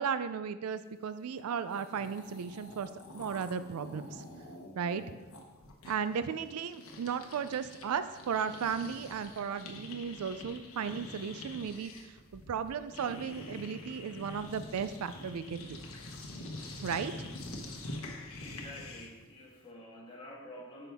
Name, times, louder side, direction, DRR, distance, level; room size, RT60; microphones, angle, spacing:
voice 1, 0.0-4.2 4.8-5.0 5.8-15.8 16.8-17.1, right 6 dB, 85° right, 12 dB, 0.4 m, -35 dB
sound 1, 1.4-1.5 1.7-7.9 8.1-19.2, left 2 dB, 70° left, 1.1 m, -46 dB
voice 2, 18.2-20.9, left 1 dB, 25° left, -3 dB, 1.4 m, -49 dB
9.0 x 5.7 x 3.5 m, 1.2 s
head